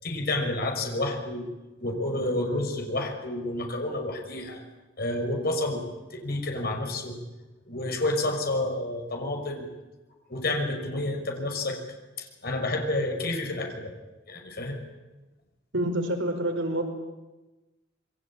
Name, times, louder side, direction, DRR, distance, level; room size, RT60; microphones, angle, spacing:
voice 1, 0.0-1.5 1.8-4.6 5.0-5.8 6.1-7.2 7.7-9.7 10.3-11.8 12.2-13.9 14.3-14.9, left 2 dB, 55° left, 3 dB, 5.9 m, -29 dB
voice 2, 15.7-16.8, right 1 dB, 70° right, 4 dB, 5.3 m, -27 dB
27.5 x 23.0 x 8.9 m, 1.1 s
head